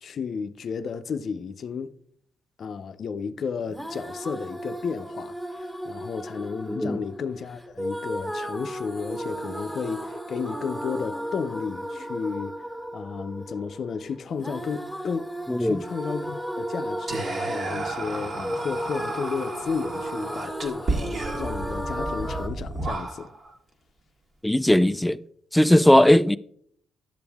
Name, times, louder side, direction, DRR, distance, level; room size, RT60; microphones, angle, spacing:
voice 1, 0.0-1.9 2.6-12.6 12.9-15.3 15.6-23.3, left 6 dB, 55° left, 0.6 m, -33 dB
sound 1, 3.7-22.5, equal, 10° right, 1.5 m, -35 dB
voice 2, 6.7-7.0 15.5-15.8 24.4-25.2 25.5-26.4, left 1 dB, 5° left, 0.3 m, -18 dB
Whispering, 17.1-23.5, right 2 dB, 45° right, 1.5 m, -32 dB
12.0 x 7.0 x 3.5 m
cardioid pair, 90°, 0 cm